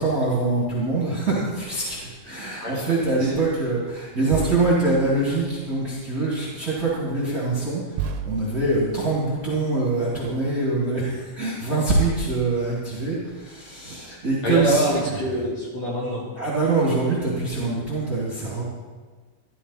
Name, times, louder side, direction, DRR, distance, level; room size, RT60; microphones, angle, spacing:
voice 1, 0.0-14.9 16.4-18.6, right 2 dB, 30° right, -6 dB, 2.1 m, -24 dB
sound 1, 0.6-0.8 2.6-2.8 4.3-5.9 7.1-7.2 7.9-9.7 11.3-11.4 11.6-12.2 12.9-13.5 14.2-14.4, right 6 dB, 80° right, 2.5 m, -35 dB
voice 2, 14.4-16.2, right 1 dB, 45° left, -5 dB, 3.4 m, -25 dB
14.0 x 12.0 x 4.2 m, 1.4 s
omnidirectional pair, 4.6 m